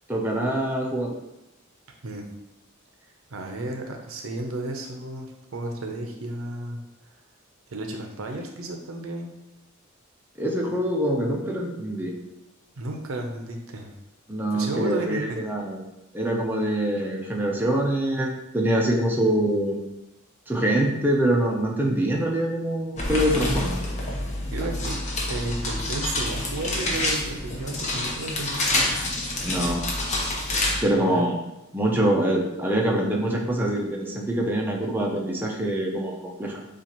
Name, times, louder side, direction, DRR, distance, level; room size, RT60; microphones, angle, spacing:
voice 1, 0.1-1.1 10.4-12.1 14.3-15.8 16.1-19.8 20.5-23.7 29.4-29.8 30.8-31.4 31.7-36.6, right 1 dB, 10° right, -1 dB, 0.5 m, -24 dB
voice 2, 3.3-6.8 7.7-9.3 12.8-13.9 14.5-15.4 24.5-25.0 25.3-28.9 30.9-31.3, right 2 dB, 75° right, 3 dB, 0.7 m, -33 dB
sound 1, 23.0-30.8, left 1 dB, 35° left, 0.8 m, -27 dB
7.1 x 2.5 x 2.9 m, 0.94 s
head